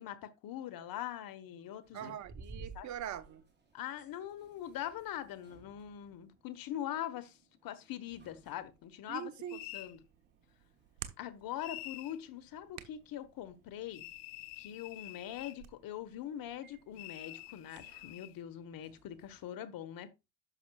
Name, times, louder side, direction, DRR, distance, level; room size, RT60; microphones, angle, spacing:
voice 1, 0.0-2.0 2.7-2.9 3.7-7.4 7.6-10.0 11.2-14.0 14.6-20.1, left 11 dB, 45° left, 1.3 m, -42 dB
sound 1, 1.8-19.5, right 3 dB, 20° right, 3.1 m, -59 dB
voice 2, 1.9-3.4 9.1-9.6, right 10 dB, 40° right, 1.0 m, -42 dB
sound 2, 9.5-10.0 11.6-12.2 13.9-15.6 17.0-18.4, left 19 dB, 65° left, 0.8 m, -47 dB
Hands, 9.5-17.9, right 12 dB, 60° right, 1.2 m, -55 dB
11.0 x 6.3 x 2.3 m
hypercardioid pair, 75°, 47 cm